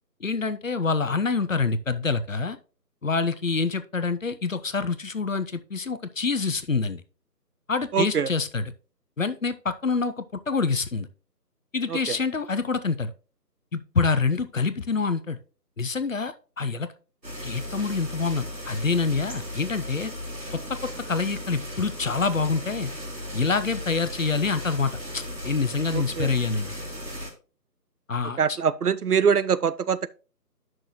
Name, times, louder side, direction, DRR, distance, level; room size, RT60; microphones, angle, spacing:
voice 1, 0.2-2.6 3.0-7.0 7.7-8.7 9.2-11.1 11.7-13.1 13.7-15.4 15.8-16.9 17.4-20.1 20.5-20.8 21.1-22.9 23.3-26.7 28.1-28.6, left 4 dB, 50° left, 0.7 m, -26 dB
voice 2, 7.9-8.3 11.9-12.2 25.9-26.3 28.4-30.1, right 7 dB, 65° right, 0.5 m, -24 dB
sound 1, 17.2-27.3, equal, 85° right, 3.4 m, -36 dB
9.6 x 6.1 x 3.0 m
figure-of-eight pair, 160°, 49 cm